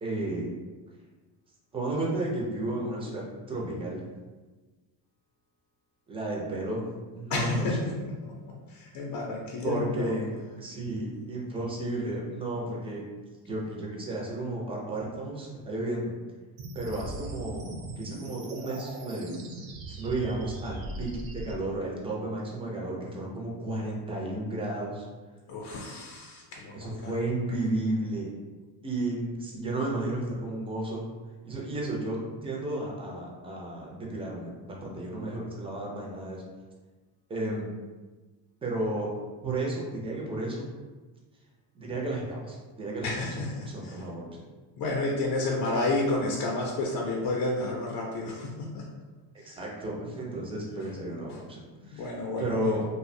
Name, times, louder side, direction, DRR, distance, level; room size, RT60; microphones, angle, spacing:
voice 1, 0.0-0.5 1.7-4.0 6.1-6.8 7.1-7.9 9.6-10.3 10.6-13.0 13.5-16.1 16.7-19.3 19.9-25.1 26.7-28.3 28.8-31.1 31.4-36.4 37.3-37.7 38.6-39.1 39.4-40.7 41.7-44.3 49.3-52.1 52.4-52.8, right 2 dB, 15° right, -2 dB, 0.3 m, -33 dB
voice 2, 7.3-10.1 25.5-27.1 43.0-44.0 44.8-48.8 49.4-49.6 51.9-52.7, left 2 dB, 50° left, -2 dB, 0.5 m, -31 dB
sound 1, 16.6-21.5, right 2 dB, 80° right, 0.6 m, -39 dB
2.6 x 2.1 x 2.5 m, 1.3 s
cardioid pair, 120°, 46 cm